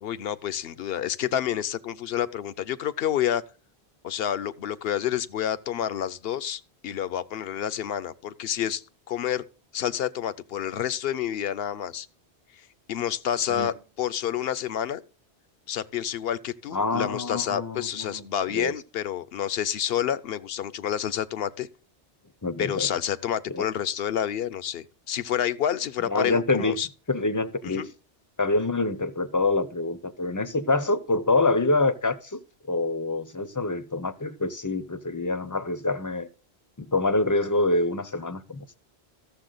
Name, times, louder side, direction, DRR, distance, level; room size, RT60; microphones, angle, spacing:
voice 1, 0.0-3.4 4.0-8.8 9.1-9.4 9.7-12.1 12.9-15.0 15.7-21.7 22.6-26.9 27.6-27.9, left 10 dB, 70° left, 0.8 m, -29 dB
voice 2, 16.7-18.2 18.5-18.7 22.4-22.9 23.5-23.6 26.1-26.8 27.1-27.9 28.4-32.4 32.7-36.3 36.8-38.6, left 2 dB, 20° left, 0.6 m, -26 dB
13.5 x 7.0 x 3.9 m
omnidirectional pair, 1.1 m